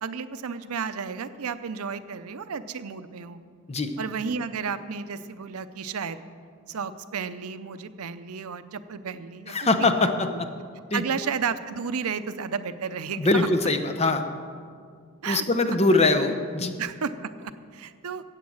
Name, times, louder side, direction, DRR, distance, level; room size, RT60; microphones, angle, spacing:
voice 1, 0.0-3.4 4.0-6.2 6.7-9.7 10.0-10.4 10.9-13.7 15.2-15.4 16.8-18.2, right 6 dB, 80° right, 12 dB, 0.6 m, -32 dB
voice 2, 9.5-10.5 10.9-11.0 13.2-14.2 15.3-16.7, left 2 dB, 30° left, 7 dB, 0.8 m, -22 dB
14.5 x 8.6 x 6.3 m, 2.1 s
head